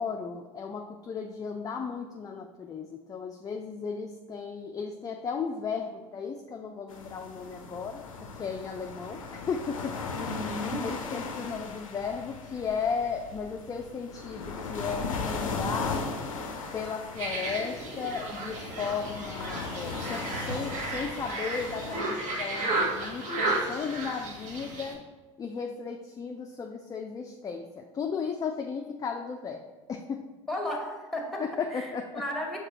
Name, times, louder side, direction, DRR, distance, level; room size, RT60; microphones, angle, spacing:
voice 1, 0.0-10.2 10.8-16.1 16.7-25.0 25.4-30.2 31.4-32.2, left 5 dB, 20° left, 3 dB, 0.4 m, -35 dB
sound 1, 6.9-22.0, left 4 dB, 90° left, 0.4 m, -37 dB
voice 2, 10.1-10.9 30.5-31.4 31.7-32.6, left 1 dB, ahead, 0 dB, 1.1 m, -34 dB
sound 2, 17.2-24.9, right 2 dB, 45° right, 1.0 m, -33 dB
sound 3, 20.3-22.8, right 3 dB, 85° right, 0.5 m, -44 dB
6.0 x 2.9 x 2.9 m, 1.2 s
hypercardioid pair, 70°, 17 cm